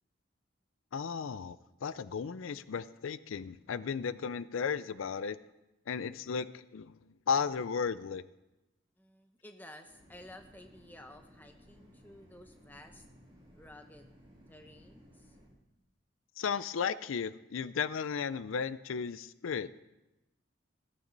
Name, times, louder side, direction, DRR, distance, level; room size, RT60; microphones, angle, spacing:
voice 1, 0.9-5.4 5.9-7.0 7.3-8.2 16.4-19.7, left 6 dB, 85° left, 16 dB, 0.4 m, -35 dB
voice 2, 9.0-13.1 13.5-14.1 14.5-15.4, left 1 dB, 10° left, 6 dB, 0.9 m, -53 dB
sound 1, 9.8-15.5, equal, 25° right, 3.6 m, -59 dB
14.5 x 14.0 x 4.0 m, 0.97 s
head